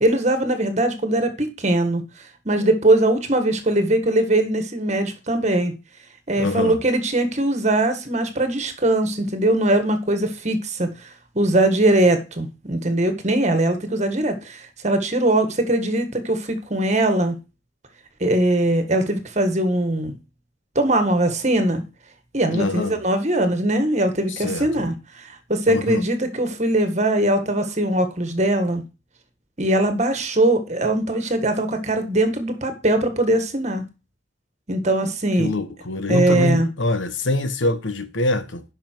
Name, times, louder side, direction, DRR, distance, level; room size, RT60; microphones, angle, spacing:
voice 1, 0.0-2.0 2.4-5.8 6.3-10.9 11.3-17.4 18.2-20.1 20.7-21.8 22.3-28.8 29.6-33.8 34.7-35.5 36.1-36.7, right 1 dB, 35° right, 1.6 m, -21 dB
voice 2, 6.4-6.8 22.5-23.0 24.3-24.9 25.7-26.0 35.4-38.6, left 2 dB, 80° left, 1.2 m, -24 dB
10.5 x 5.6 x 4.5 m
head